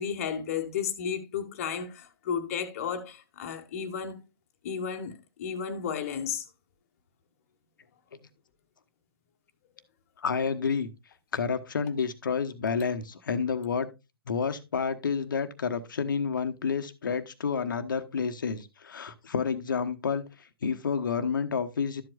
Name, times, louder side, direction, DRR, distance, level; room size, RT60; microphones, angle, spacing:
voice 1, 0.0-4.2 4.6-6.4, left 7 dB, 35° left, 1.4 m, -33 dB
voice 2, 10.2-10.9 11.3-13.9 14.3-20.3 20.6-22.0, left 6 dB, 55° left, 1.1 m, -29 dB
12.5 x 7.6 x 2.4 m
figure-of-eight pair, 130°, 13 cm